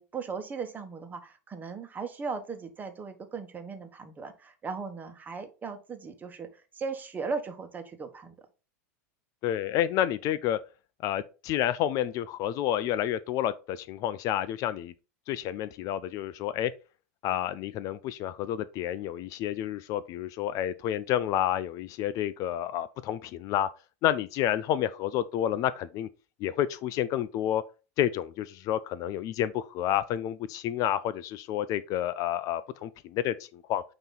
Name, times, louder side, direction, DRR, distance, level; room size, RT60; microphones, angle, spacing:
voice 1, 0.0-8.5, right 5 dB, 20° right, 1.2 m, -37 dB
voice 2, 9.4-10.6 11.0-14.9 15.3-16.7 17.2-23.7 24.0-26.1 26.4-27.6 28.0-33.8, left 11 dB, 45° left, 0.4 m, -29 dB
8.9 x 3.0 x 4.0 m
hypercardioid pair, 105°, 8 cm